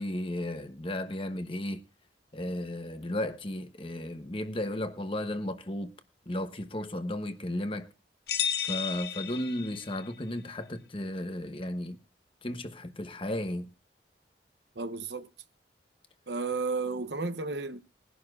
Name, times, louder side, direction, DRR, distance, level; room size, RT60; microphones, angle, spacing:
voice 1, 0.0-1.8 2.3-5.9 6.3-7.9 8.6-12.0 12.4-13.7, left 1 dB, 30° left, 1.1 m, -34 dB
sound 1, 8.3-10.1, left 9 dB, 60° left, 1.0 m, -33 dB
voice 2, 14.7-15.3 16.3-17.8, right 3 dB, 70° right, 1.0 m, -33 dB
22.0 x 11.0 x 2.5 m
head